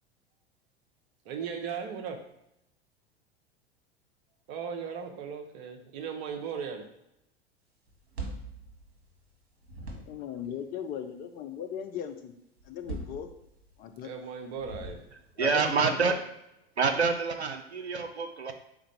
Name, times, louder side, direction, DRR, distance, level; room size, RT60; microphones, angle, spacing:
voice 1, 1.3-2.2 4.5-6.9 14.0-15.0, right 6 dB, 45° right, 3 dB, 0.8 m, -37 dB
sound 1, 7.9-9.3 9.6-10.4 12.6-13.8 14.5-15.4, right 2 dB, 70° right, 1.1 m, -41 dB
voice 2, 10.1-12.3 12.7-13.3 13.8-14.1 15.4-16.2, left 8 dB, 30° left, 6 dB, 0.4 m, -38 dB
voice 3, 15.4-16.2 16.8-18.5, right 4 dB, 90° right, 5 dB, 0.5 m, -27 dB
3.9 x 2.5 x 4.3 m, 0.81 s
figure-of-eight pair, 80°, 32 cm